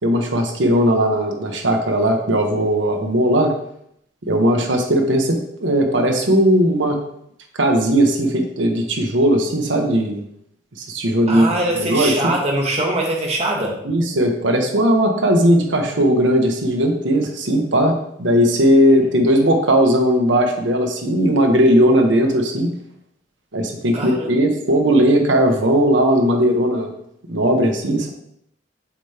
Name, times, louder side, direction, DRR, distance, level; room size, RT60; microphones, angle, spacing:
voice 1, 0.0-3.5 4.3-7.0 7.6-10.2 10.8-12.3 13.8-22.7 23.5-26.9 27.3-28.1, equal, 75° right, 4 dB, 1.0 m, -17 dB
voice 2, 11.3-13.7 23.9-24.3, right 1 dB, 35° right, -2 dB, 1.4 m, -22 dB
7.1 x 3.4 x 4.3 m, 0.73 s
head